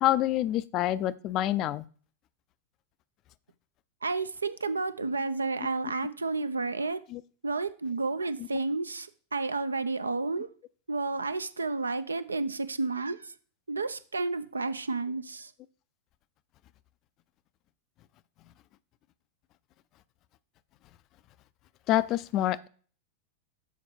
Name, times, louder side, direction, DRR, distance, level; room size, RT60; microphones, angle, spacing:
voice 1, 0.0-1.8 7.1-7.2 21.9-22.7, left 13 dB, 35° left, 17 dB, 0.4 m, -27 dB
voice 2, 4.0-7.0 7.4-10.5 10.9-13.3 13.7-15.5, right 3 dB, 75° right, 13 dB, 0.5 m, -31 dB
7.2 x 4.3 x 4.2 m, 0.42 s
figure-of-eight pair, 90°, 0 cm